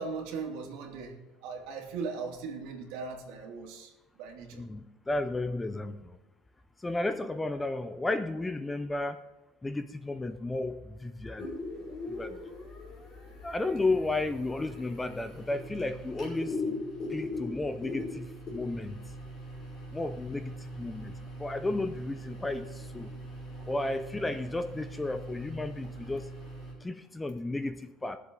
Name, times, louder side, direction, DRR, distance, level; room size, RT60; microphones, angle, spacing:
voice 1, 0.0-4.7 11.8-11.9, right 4 dB, 75° right, 1 dB, 2.6 m, -39 dB
voice 2, 5.1-6.2 6.8-9.2 9.6-11.5 12.1-12.4 13.4-16.6 17.1-19.0 19.9-21.1 21.4-23.1 23.7-26.3 26.8-28.2, left 2 dB, 10° left, 10 dB, 0.5 m, -33 dB
sound 1, 11.4-26.7, left 1 dB, 30° left, 5.1 m, -41 dB
20.5 x 7.5 x 3.9 m, 1.1 s
cardioid pair, 180°, 0 cm